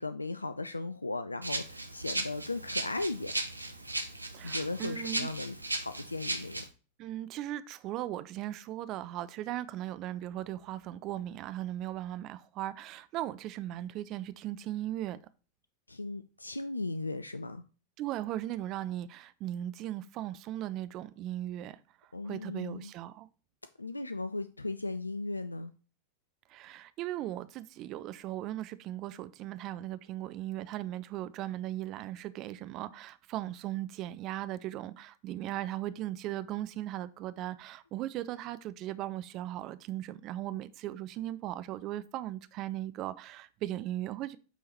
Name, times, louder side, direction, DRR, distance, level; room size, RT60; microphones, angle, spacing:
voice 1, 0.0-3.3 4.4-6.6 15.9-17.6 22.1-22.9 23.8-25.7, left 2 dB, 80° left, 0.3 m, -37 dB
Rattle (instrument), 1.4-6.7, right 2 dB, 85° right, 0.7 m, -36 dB
voice 2, 4.3-5.3 7.0-15.2 18.0-21.8 22.2-23.3 26.5-44.4, right 13 dB, 40° right, 0.4 m, -38 dB
8.2 x 3.8 x 4.2 m
figure-of-eight pair, 90°, 0 cm